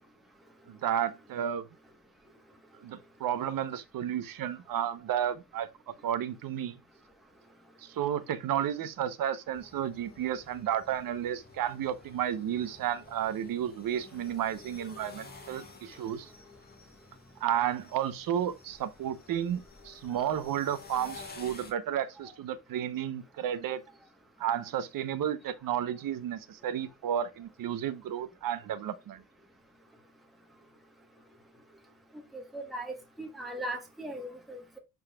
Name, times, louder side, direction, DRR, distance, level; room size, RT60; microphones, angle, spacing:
voice 1, 0.7-1.7 2.8-6.8 7.8-16.3 17.4-23.8 24.4-29.2, right 10 dB, 60° right, 0.9 m, -32 dB
sound 1, 9.5-21.7, left 4 dB, 25° left, 1.8 m, -51 dB
voice 2, 32.3-34.8, right 1 dB, ahead, 1.2 m, -39 dB
11.5 x 4.0 x 2.3 m
cardioid pair, 145°, 38 cm